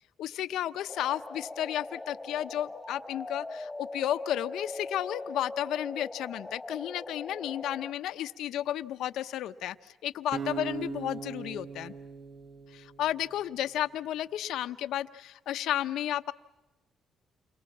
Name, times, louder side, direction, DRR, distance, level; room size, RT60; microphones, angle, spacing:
voice 1, 0.2-11.9 12.7-16.3, left 12 dB, 85° left, 10 dB, 0.8 m, -33 dB
sound 1, 0.9-7.9, left 2 dB, 10° left, 1.5 m, -41 dB
sound 2, 10.3-13.5, right 6 dB, 60° right, 1.3 m, -39 dB
29.5 x 24.0 x 7.3 m, 1.1 s
cardioid pair, 90°, 0 cm